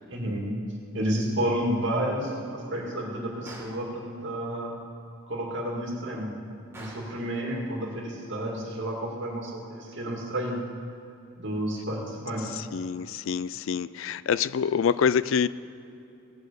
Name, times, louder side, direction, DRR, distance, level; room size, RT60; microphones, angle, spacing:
voice 1, 0.1-0.6 0.9-4.7 5.3-6.3 6.7-10.6 11.4-12.6, right 1 dB, 55° right, -2 dB, 2.3 m, -31 dB
Gunshot gunfire, 3.5-3.9 6.7-7.2, right 1 dB, 10° right, 1.8 m, -45 dB
voice 2, 12.6-15.5, left 7 dB, 65° left, 18 dB, 0.3 m, -26 dB
17.0 x 6.4 x 6.8 m, 2.7 s
head